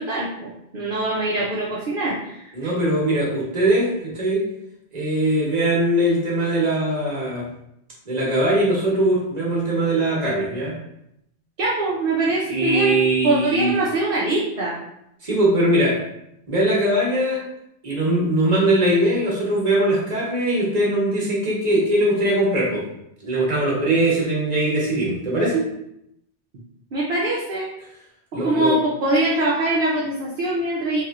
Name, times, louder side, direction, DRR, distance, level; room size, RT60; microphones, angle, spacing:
voice 1, 0.0-2.7 11.6-13.0 13.2-14.8 26.9-27.7 28.4-31.0, right 2 dB, 60° right, -5 dB, 0.7 m, -23 dB
voice 2, 2.5-4.4 4.9-7.4 8.1-10.7 12.5-13.7 15.2-16.0 16.5-17.4 17.8-22.8 23.2-25.6 28.3-28.7, right 1 dB, 40° right, -5 dB, 1.1 m, -21 dB
3.0 x 2.6 x 2.4 m, 0.79 s
omnidirectional pair, 1.1 m